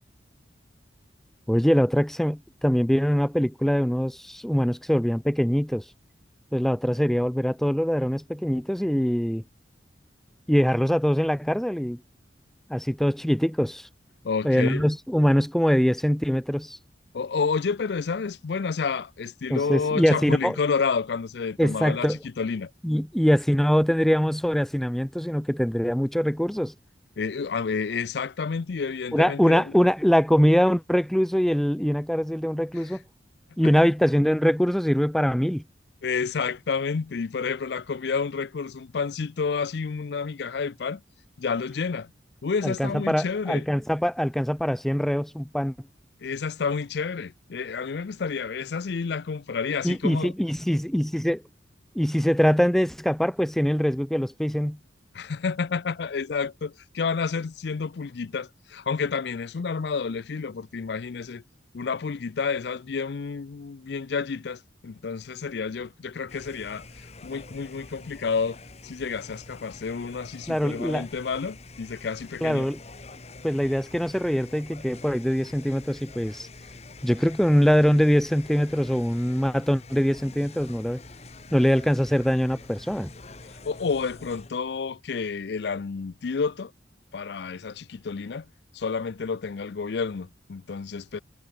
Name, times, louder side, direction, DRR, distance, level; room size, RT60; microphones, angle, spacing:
voice 1, 1.5-5.8 6.5-9.4 10.5-12.0 12.7-13.9 14.4-16.8 19.5-20.6 21.6-22.2 22.8-26.7 29.1-33.0 33.6-35.6 42.6-45.8 49.8-51.4 52.0-54.8 70.5-71.1 72.4-72.8 73.4-76.5 77.0-81.0 81.5-83.1, equal, ahead, 0.4 m, -23 dB
voice 2, 14.2-14.8 17.1-22.7 27.2-29.7 32.8-33.0 36.0-41.0 41.4-42.1 42.4-43.7 46.2-50.3 55.1-61.4 61.7-72.7 83.4-86.7 87.1-88.5 88.7-91.2, left 5 dB, 65° left, 0.5 m, -30 dB
sound 1, 66.3-84.5, left 3 dB, 35° left, 1.7 m, -46 dB
head